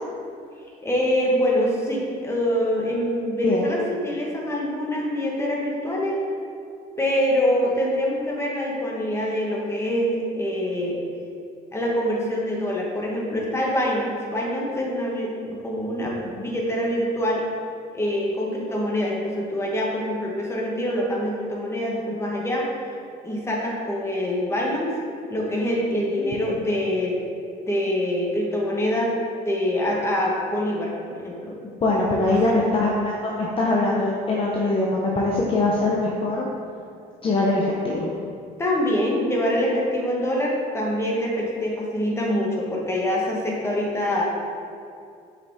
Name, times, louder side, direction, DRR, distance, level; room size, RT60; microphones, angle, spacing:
voice 1, 0.8-6.2 7.0-11.0 11.7-16.1 16.4-17.4 17.9-22.7 23.2-24.9 25.3-27.1 27.7-29.1 29.4-31.5 32.3-32.6 38.6-44.2, equal, 15° left, -3 dB, 1.3 m, -25 dB
voice 2, 26.2-26.5 31.8-36.5 37.2-38.1, left 2 dB, 35° left, -4 dB, 0.7 m, -23 dB
6.3 x 4.9 x 3.5 m, 2.4 s
cardioid pair, 110°, 17 cm